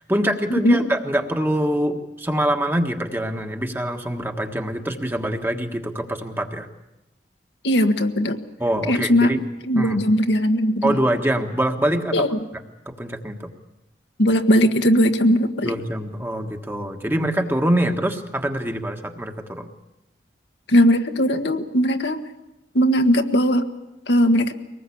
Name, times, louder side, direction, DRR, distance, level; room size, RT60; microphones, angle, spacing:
voice 1, 0.0-6.7 8.6-9.4 9.7-10.0 10.8-12.2 12.8-13.5 15.6-19.7, right 1 dB, 10° right, 4 dB, 1.5 m, -24 dB
voice 2, 7.6-8.4 8.9-9.3 9.6-11.0 12.1-12.4 14.2-15.7 20.7-22.2 22.7-23.7 24.1-24.5, equal, 75° left, 5 dB, 1.6 m, -18 dB
23.5 x 19.5 x 8.6 m, 0.94 s
head